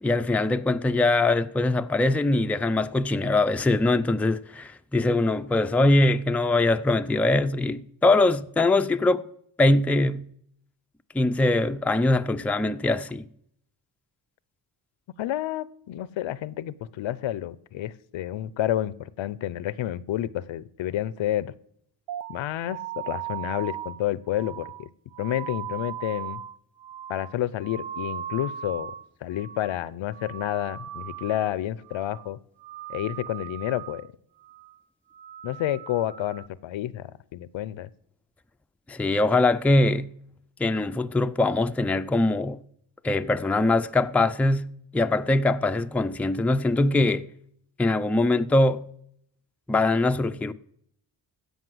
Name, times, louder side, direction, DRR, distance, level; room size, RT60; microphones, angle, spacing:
voice 1, 0.0-9.2 9.6-10.2 11.1-13.2 38.9-40.1 40.6-42.6 43.0-47.3 47.8-48.9 49.7-50.5, left 2 dB, 5° left, 0.4 m, -22 dB
voice 2, 15.2-21.5 22.3-24.9 25.2-26.4 27.1-28.9 29.2-32.4 32.9-34.1 35.4-37.9, left 13 dB, 80° left, 0.7 m, -30 dB
sound 1, 22.1-29.1 29.3-29.8 30.1-31.6 31.8-32.3 32.6-34.1 34.4-34.8 35.1-36.5, right 10 dB, 85° right, 0.8 m, -38 dB
15.5 x 5.4 x 7.8 m
cardioid pair, 90°, 45 cm